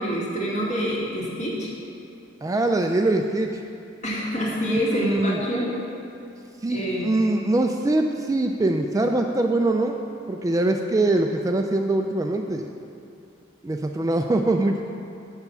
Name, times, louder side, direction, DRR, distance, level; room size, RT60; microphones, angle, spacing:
voice 1, 0.0-1.7 4.0-5.8 6.7-7.1, equal, 40° left, -5 dB, 2.0 m, -26 dB
voice 2, 2.4-3.6 4.6-5.4 6.6-10.0 10.3-12.7 13.6-14.8, right 2 dB, 15° right, 4 dB, 0.3 m, -23 dB
7.1 x 6.6 x 7.0 m, 2.5 s
head